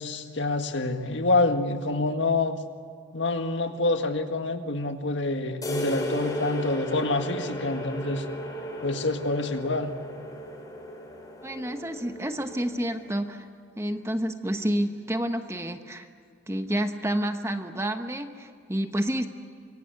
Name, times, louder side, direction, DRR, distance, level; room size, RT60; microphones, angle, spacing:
voice 1, 0.0-2.6 3.1-8.3 8.8-9.9, left 2 dB, 75° left, 6 dB, 1.8 m, -27 dB
sound 1, 5.6-13.1, equal, 20° left, 5.0 m, -35 dB
voice 2, 11.4-13.5 13.8-16.1 16.5-19.3, equal, 15° right, 7 dB, 1.0 m, -29 dB
26.0 x 23.5 x 8.4 m, 2.2 s
head